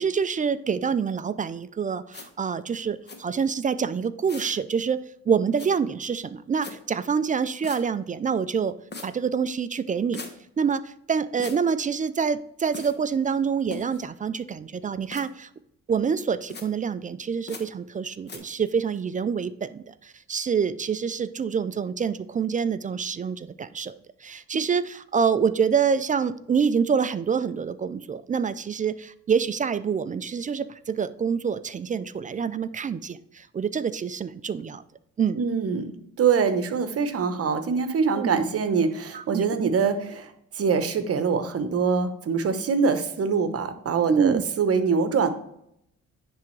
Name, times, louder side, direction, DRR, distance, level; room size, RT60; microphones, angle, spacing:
voice 1, 0.0-8.7 9.0-10.2 10.6-15.5 15.9-23.9 24.2-34.8 35.2-35.4 38.2-38.4 39.1-39.4 44.1-44.4, right 6 dB, 25° right, 14 dB, 0.3 m, -26 dB
sound 1, 2.1-2.3 3.1-3.2 4.3-4.6 5.6-5.7 6.6-6.7 7.6-7.8 8.9-9.1 10.1-10.3 11.4-11.6 12.7-12.9 13.7-14.0 15.1-15.2 16.5-16.6 17.5-17.6 18.3-18.4, left 2 dB, 35° left, 1.3 m, -38 dB
voice 2, 35.3-45.3, right 5 dB, 50° right, 9 dB, 0.9 m, -24 dB
10.5 x 3.5 x 3.1 m, 0.74 s
cardioid pair, 90°, 30 cm